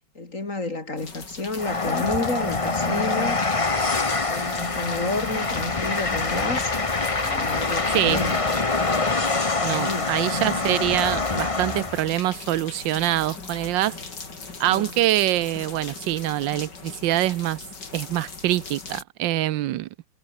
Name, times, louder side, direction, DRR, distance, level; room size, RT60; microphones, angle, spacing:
voice 1, 0.2-3.4 4.3-6.7 7.2-8.4 9.6-10.1 14.7-15.0, left 3 dB, 40° left, 3.9 m, -30 dB
sound 1, 1.0-19.0, left 4 dB, 60° left, 4.2 m, -40 dB
Train, 1.6-12.1, left 3 dB, 20° left, 1.1 m, -25 dB
voice 2, 9.6-14.0 14.6-17.6 17.9-19.9, right 14 dB, 75° right, 1.3 m, -24 dB
omnidirectional pair, 2.1 m